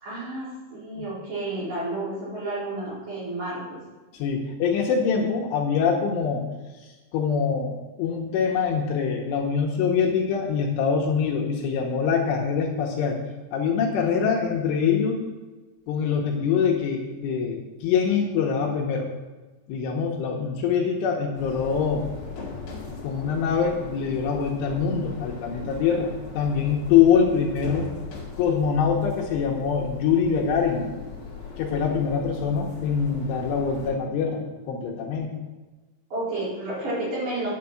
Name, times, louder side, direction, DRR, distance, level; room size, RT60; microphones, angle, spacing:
voice 1, 0.0-3.8 36.1-37.5, right 2 dB, 40° right, -9 dB, 5.6 m, -31 dB
voice 2, 4.2-6.5 7.1-13.2 13.5-15.2 15.9-19.1 19.7-22.1 22.9-27.9 28.4-30.9 31.6-34.4 34.7-35.3, left 6 dB, 75° left, 0 dB, 3.3 m, -24 dB
sound 1, 21.3-33.9, left 5 dB, 50° left, 2.8 m, -39 dB
9.7 x 6.7 x 7.3 m, 1.2 s
omnidirectional pair, 6.0 m